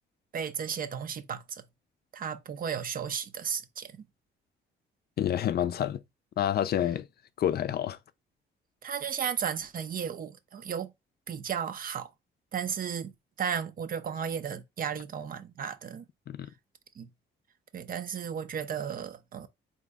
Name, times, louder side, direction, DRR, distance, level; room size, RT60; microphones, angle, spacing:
voice 1, 0.3-1.6 2.1-3.9 8.8-10.9 11.3-12.1 12.5-16.0 17.0-17.1 17.7-19.5, right 7 dB, 45° right, 0.6 m, -34 dB
voice 2, 5.2-6.0 6.4-7.1 7.4-8.0 16.3-16.5, left 10 dB, 55° left, 0.4 m, -28 dB
3.9 x 2.9 x 3.4 m
cardioid pair, 90°, 20 cm